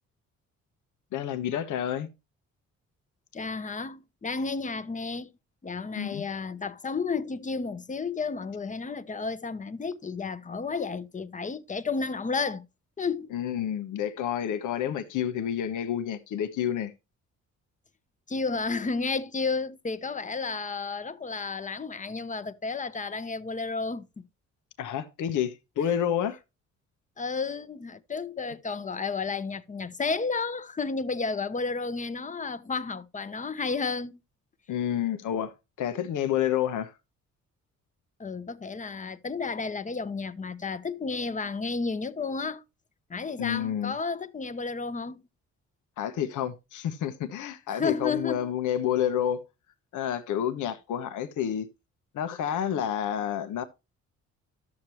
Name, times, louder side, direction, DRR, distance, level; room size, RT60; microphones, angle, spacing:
voice 1, 1.1-2.1 6.0-6.2 13.3-16.9 24.8-26.4 34.7-36.9 43.4-44.0 46.0-49.4 49.9-51.7 52.1-53.6, left 10 dB, 80° left, 1.2 m, -29 dB
voice 2, 3.3-5.3 5.6-12.7 13.0-13.3 18.3-24.2 27.2-34.2 38.2-42.6 43.1-45.2 47.7-48.5, left 4 dB, 25° left, 0.9 m, -32 dB
12.5 x 7.4 x 3.1 m
cardioid pair, 90°, 30 cm